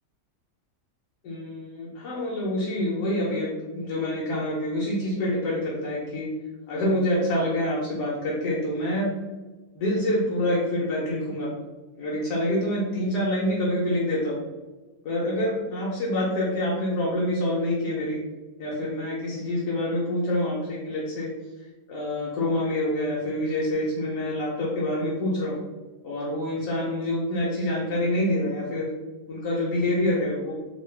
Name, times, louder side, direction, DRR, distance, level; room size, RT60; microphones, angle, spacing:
voice 1, 1.2-6.3 6.7-9.2 9.7-11.5 12.0-14.4 15.0-18.2 18.6-21.3 21.9-25.6 26.0-28.9 29.3-30.5, left 1 dB, 75° left, -5 dB, 1.3 m, -26 dB
3.5 x 2.2 x 3.2 m, 1.2 s
omnidirectional pair, 1.8 m